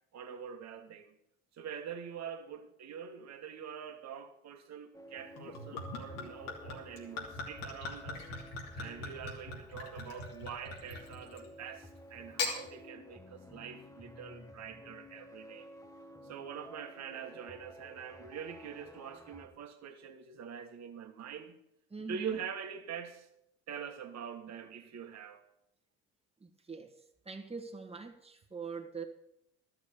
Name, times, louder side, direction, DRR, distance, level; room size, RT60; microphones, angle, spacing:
voice 1, 0.1-1.1 1.5-8.2 8.8-15.7 16.2-21.6 22.0-23.3 23.7-25.4, right 7 dB, 50° right, 1.6 m, -44 dB
sound 1, 4.9-19.5, left 1 dB, 10° left, 1.3 m, -53 dB
Gurgling / Chink clink / Liquid, 5.4-11.5 12.2-12.6, left 3 dB, 80° left, 2.9 m, -41 dB
voice 2, 21.9-22.4 26.4-26.9 27.3-29.0, right 4 dB, 15° right, 1.8 m, -43 dB
12.5 x 6.4 x 8.7 m
hypercardioid pair, 75°, 35 cm